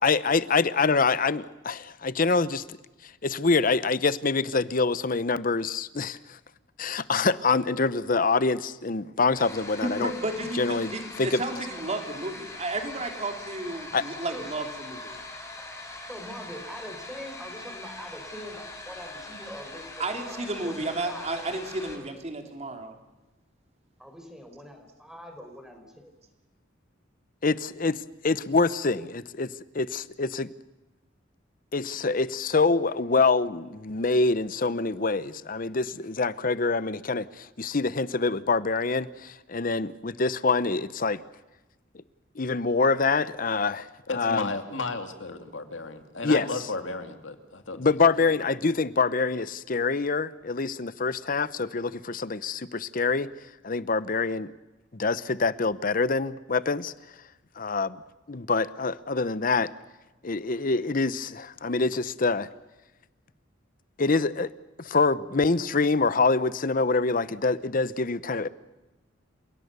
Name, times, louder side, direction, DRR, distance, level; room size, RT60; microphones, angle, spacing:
voice 1, 0.0-2.6 3.2-6.4 6.8-10.1 10.5-11.4 13.9-14.0 27.4-30.5 31.7-41.2 42.4-43.9 44.1-44.5 46.2-46.5 47.8-53.3 53.6-54.5 54.9-56.9 57.6-58.0 58.3-59.7 60.2-62.5 64.0-64.5 64.8-68.5, left 4 dB, 45° left, 16 dB, 0.8 m, -25 dB
Kettle Boiling, 9.4-22.0, left 2 dB, 15° left, 4.1 m, -42 dB
voice 2, 9.8-15.2 20.0-23.0, right 2 dB, 35° right, 5 dB, 3.2 m, -32 dB
voice 3, 14.3-14.7 16.1-21.4 24.0-26.1, equal, 5° right, 4 dB, 4.6 m, -43 dB
voice 4, 44.1-47.9 48.2-48.3, left 3 dB, 80° left, 7 dB, 2.4 m, -34 dB
29.5 x 17.5 x 6.9 m, 1.1 s
head